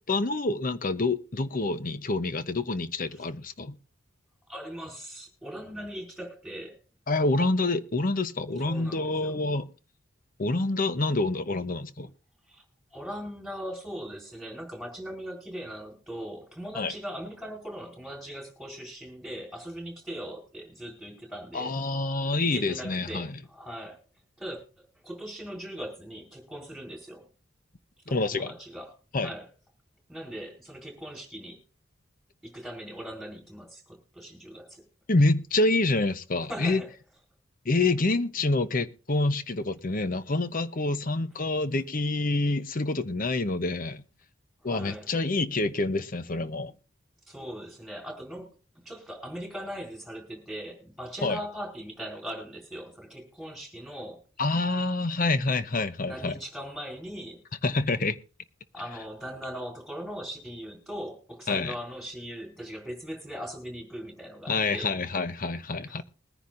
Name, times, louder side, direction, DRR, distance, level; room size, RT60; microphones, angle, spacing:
voice 1, 0.1-3.8 7.1-9.7 10.4-12.1 16.7-16.9 21.5-23.4 28.1-28.5 29.1-29.3 35.1-36.8 37.6-44.0 44.6-46.7 51.2-51.4 54.4-56.3 57.6-58.2 61.5-61.7 64.5-66.0, left 2 dB, 40° left, 0.8 m, -27 dB
voice 2, 4.5-6.8 8.6-9.4 12.5-12.6 12.9-21.8 22.4-24.0 24.4-27.3 28.1-28.9 29.2-29.5 30.1-31.6 32.4-34.8 36.5-36.9 44.6-45.1 47.3-48.5 48.8-54.2 56.1-57.4 58.7-64.9, equal, ahead, 4.2 m, -40 dB
21.5 x 10.0 x 2.6 m
head